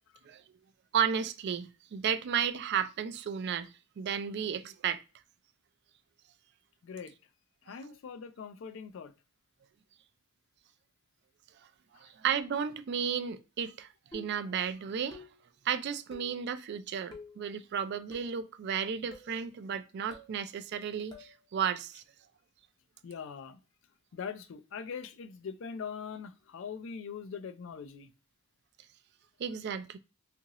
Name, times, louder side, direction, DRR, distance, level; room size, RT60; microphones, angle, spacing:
voice 1, 0.9-5.0 7.7-7.8 12.0-15.2 15.7-22.0 29.4-30.0, right 7 dB, 50° right, 0.3 m, -33 dB
voice 2, 6.8-7.2 7.6-9.1 23.0-23.6 24.1-28.1, left 6 dB, 60° left, 0.3 m, -42 dB
sound 1, 14.1-14.5 15.1-15.5 16.1-16.4 17.1-17.4 18.1-18.4 19.1-19.4 20.1-20.4 21.1-21.4, left 2 dB, 20° left, 0.6 m, -49 dB
2.7 x 2.5 x 2.9 m
head